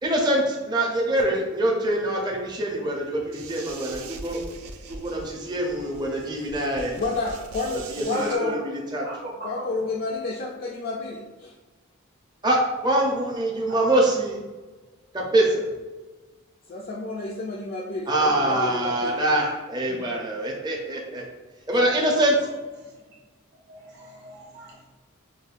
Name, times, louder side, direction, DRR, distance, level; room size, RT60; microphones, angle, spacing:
voice 1, 0.0-4.4 4.9-7.0 7.9-8.6 8.9-9.1 12.4-14.4 15.1-15.6 18.1-21.2 21.7-22.4, right 1 dB, 20° right, -2 dB, 0.5 m, -24 dB
sound 1, 3.3-8.4, right 3 dB, 80° right, 0.4 m, -42 dB
voice 2, 7.0-8.6 9.4-11.5 16.7-19.3, left 3 dB, 45° left, -2 dB, 0.3 m, -30 dB
voice 3, 8.0-8.6 9.0-9.8 13.7-13.9 19.8-20.0 22.8-23.0 23.7-24.9, right 1 dB, 50° right, -5 dB, 0.8 m, -38 dB
5.3 x 2.2 x 2.4 m, 1.3 s
head